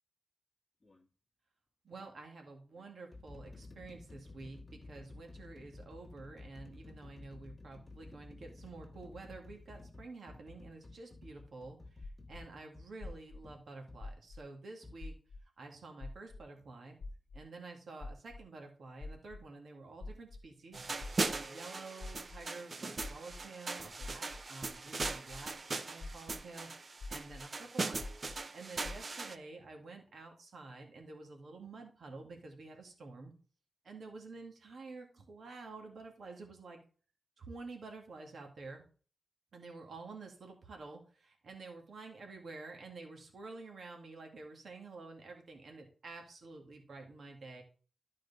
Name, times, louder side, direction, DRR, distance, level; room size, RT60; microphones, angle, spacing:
sound 1, 0.8-1.1 2.0-2.1 2.8-14.1 14.8-15.0, left 2 dB, 30° left, 1.6 m, -53 dB
voice 1, 1.8-15.1 15.6-17.0 17.3-20.9 21.3-28.0 28.3-33.3 33.8-36.8 37.4-38.8 39.5-47.6, right 3 dB, 70° right, 2 dB, 2.1 m, -50 dB
sound 2, 12.0-12.4 13.0-13.4 14.0-14.4 15.0-15.4 16.0-16.4 17.0-17.4 18.0-18.4 19.0-19.4 20.0-20.4 21.0-21.4 22.0-22.4 23.0-23.4 24.0-24.4 25.0-25.4 26.0-26.4 27.0-27.4 28.0-28.4 28.8-29.0, left 3 dB, 65° left, 0.9 m, -44 dB
sound 3, 20.7-29.4, right 3 dB, 45° right, 0.7 m, -39 dB
12.0 x 4.8 x 4.1 m, 0.39 s
wide cardioid pair, 90°, 0 cm